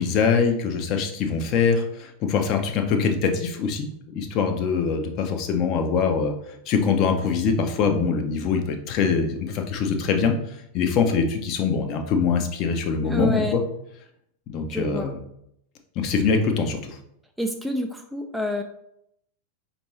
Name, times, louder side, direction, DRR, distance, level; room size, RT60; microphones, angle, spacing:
voice 1, 0.0-6.3 6.7-10.3 10.7-13.6 14.5-15.2 16.0-17.0, left 5 dB, 40° left, 4 dB, 0.6 m, -23 dB
voice 2, 13.0-13.6 14.7-15.1 17.4-18.6, equal, ahead, 4 dB, 0.4 m, -28 dB
5.1 x 2.6 x 3.1 m, 0.75 s
figure-of-eight pair, 90°, 0 cm